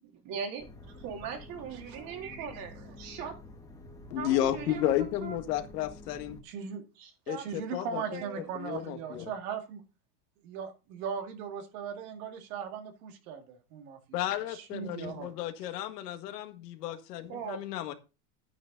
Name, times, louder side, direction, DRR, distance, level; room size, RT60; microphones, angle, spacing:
voice 1, 0.2-0.7 1.0-3.4 4.2-5.4 7.0-7.4 7.9-8.5 17.3-17.6, right 7 dB, 45° right, 3.4 m, -40 dB
sound 1, 0.6-6.4, left 2 dB, 5° left, 1.3 m, -49 dB
voice 2, 1.7-2.6 6.4-6.9 7.4-9.8 10.4-14.2 14.5-15.3, right 7 dB, 65° right, 2.3 m, -39 dB
voice 3, 4.1-6.4 7.3-8.2 8.6-9.3 14.1-17.9, left 12 dB, 85° left, 1.9 m, -33 dB
10.0 x 9.2 x 3.9 m
supercardioid pair, 145°, 47 cm